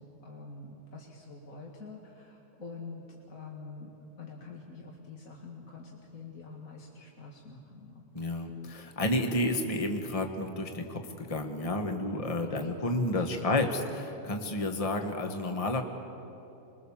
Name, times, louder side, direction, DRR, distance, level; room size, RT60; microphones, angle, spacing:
voice 1, 0.0-8.4 12.5-12.8 13.1-13.7, left 3 dB, 70° left, -2 dB, 2.6 m, -46 dB
voice 2, 8.1-15.8, left 1 dB, 25° left, 4 dB, 1.6 m, -31 dB
26.5 x 22.0 x 7.3 m, 3.0 s
omnidirectional pair, 1.5 m